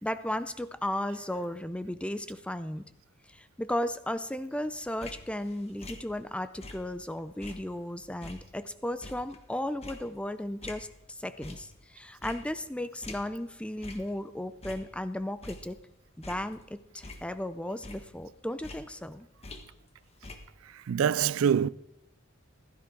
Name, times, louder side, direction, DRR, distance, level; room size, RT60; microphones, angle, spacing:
voice 1, 0.0-2.8 3.3-15.8 16.2-19.3, left 1 dB, 5° left, 0.5 m, -35 dB
sound 1, 4.8-7.1 7.4-11.1 11.4-11.9 12.2-13.6 13.8-14.2 14.5-15.9 16.2-17.6 17.8-20.0 20.2-20.4, left 2 dB, 30° left, 1.4 m, -47 dB
voice 2, 20.9-21.7, right 8 dB, 90° right, 0.4 m, -24 dB
15.5 x 13.0 x 3.8 m
head